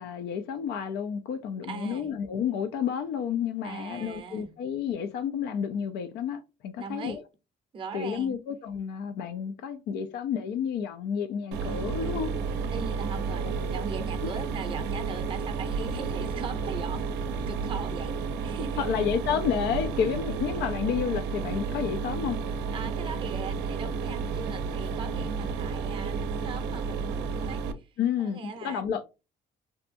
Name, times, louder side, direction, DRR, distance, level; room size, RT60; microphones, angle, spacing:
voice 1, 0.0-7.2 7.9-12.3 13.4-13.8 18.8-22.4 28.0-29.0, left 7 dB, 75° left, 0.4 m, -30 dB
voice 2, 1.7-2.1 3.6-4.5 6.8-7.2 7.7-8.4 12.7-18.9 22.7-28.9, right 5 dB, 30° right, 0.6 m, -40 dB
Mechanisms, 11.5-27.7, right 5 dB, 90° right, 0.5 m, -31 dB
2.7 x 2.2 x 2.5 m
cardioid pair, 110°, 17 cm